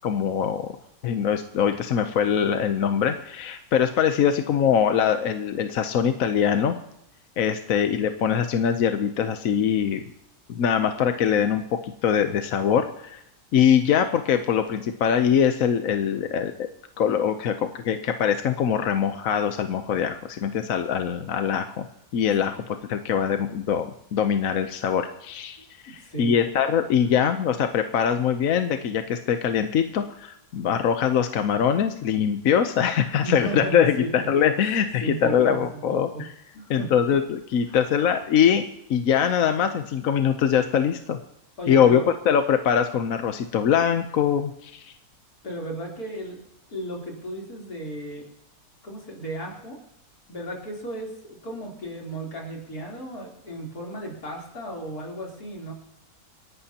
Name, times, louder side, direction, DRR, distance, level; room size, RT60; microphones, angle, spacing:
voice 1, 0.0-0.7 1.0-6.8 7.4-10.0 10.5-13.2 13.5-16.7 17.0-21.8 22.1-25.6 25.8-36.3 36.7-38.6 38.9-41.2 41.7-44.9, left 8 dB, 65° left, 7 dB, 1.2 m, -23 dB
voice 2, 26.0-26.4 33.2-34.3 34.6-36.2 36.5-36.9 37.7-37.8 41.6-42.1 45.4-46.4 46.7-48.2 48.8-49.8 50.3-55.7, right 1 dB, 85° left, -2 dB, 4.1 m, -34 dB
27.5 x 11.0 x 2.9 m, 0.82 s
omnidirectional pair, 1.6 m